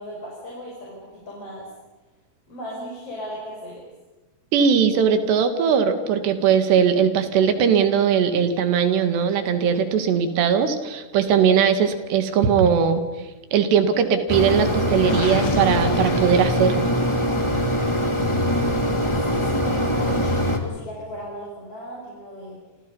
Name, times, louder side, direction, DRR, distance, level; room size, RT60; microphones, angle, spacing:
voice 1, 0.0-1.7 2.5-3.9 18.6-22.6, equal, 35° left, -2 dB, 6.1 m, -37 dB
voice 2, 4.5-13.0 13.5-16.9, right 7 dB, 75° right, 8 dB, 4.0 m, -19 dB
Mechanisms, 14.3-20.6, equal, 20° left, 0.8 m, -22 dB
Gurgling, 15.0-17.1, left 4 dB, 80° left, 5.8 m, -30 dB
28.5 x 27.0 x 5.5 m, 1.2 s
omnidirectional pair, 5.0 m